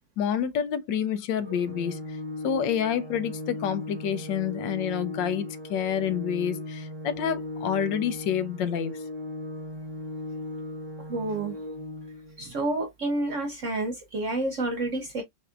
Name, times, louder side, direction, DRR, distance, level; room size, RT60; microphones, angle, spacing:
voice 1, 0.2-2.2 2.4-9.0, left 8 dB, 75° left, 1.3 m, -28 dB
Organ, 1.4-12.4, left 1 dB, 85° right, 2.2 m, -37 dB
voice 2, 11.1-11.6 12.4-15.2, right 2 dB, 60° right, 0.8 m, -29 dB
5.8 x 2.7 x 2.4 m
omnidirectional pair, 2.0 m